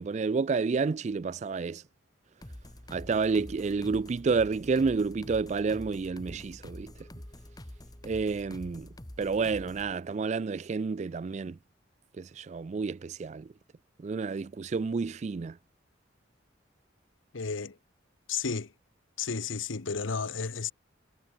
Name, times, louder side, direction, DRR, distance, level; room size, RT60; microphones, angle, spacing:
voice 1, 0.0-1.8 2.9-6.9 8.0-8.9 9.2-11.6 12.2-13.5 14.0-15.6, right 4 dB, 35° right, 0.3 m, -30 dB
sound 1, 2.4-9.9, left 1 dB, 20° left, 1.6 m, -46 dB
voice 2, 17.3-17.7 18.3-18.7 19.2-20.7, left 5 dB, 90° left, 1.0 m, -32 dB
head